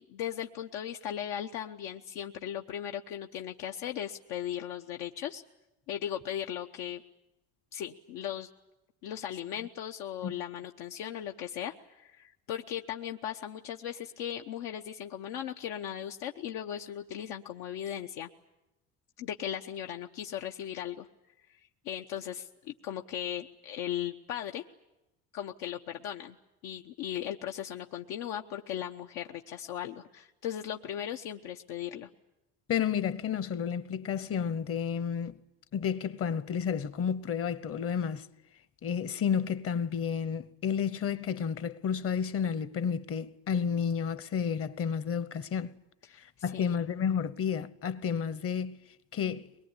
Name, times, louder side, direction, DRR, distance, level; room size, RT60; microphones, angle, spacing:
voice 1, 0.1-5.4 5.9-7.0 7.7-8.5 9.0-18.3 19.2-21.1 21.8-24.6 25.3-26.4 26.6-32.1 46.1-46.2 46.5-46.8, left 10 dB, 85° left, 1.0 m, -37 dB
voice 2, 32.7-35.4 35.7-38.3 38.8-45.7 46.2-48.8 49.1-49.5, left 7 dB, 40° left, 0.9 m, -31 dB
23.0 x 21.5 x 9.7 m
cardioid pair, 130°, 35 cm